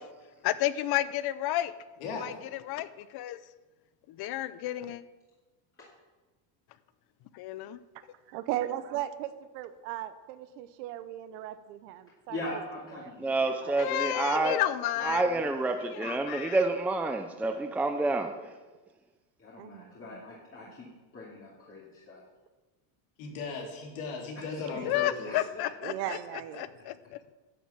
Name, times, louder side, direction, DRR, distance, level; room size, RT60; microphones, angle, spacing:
voice 1, 0.4-1.7 2.2-2.3 2.7-3.4 4.1-5.0 7.3-7.8 13.7-15.2 15.8-16.6 24.9-27.2, left 14 dB, 50° left, 15 dB, 0.8 m, -32 dB
voice 2, 2.0-2.4 23.2-25.4, left 4 dB, 70° left, 1 dB, 3.3 m, -37 dB
voice 3, 8.3-12.4 13.0-13.1 13.6-13.8 19.6-19.9 25.8-26.7, right 13 dB, 80° right, 12 dB, 0.9 m, -37 dB
voice 4, 12.3-13.3 15.0-15.4 17.6-17.7 19.4-20.9 21.1-22.2 24.5-24.6 25.2-25.7, left 2 dB, 25° left, -6 dB, 2.7 m, -42 dB
voice 5, 13.2-14.6 15.0-18.5, right 2 dB, 5° right, 5 dB, 0.6 m, -28 dB
11.0 x 7.2 x 7.3 m, 1.2 s
supercardioid pair, 115°, 49 cm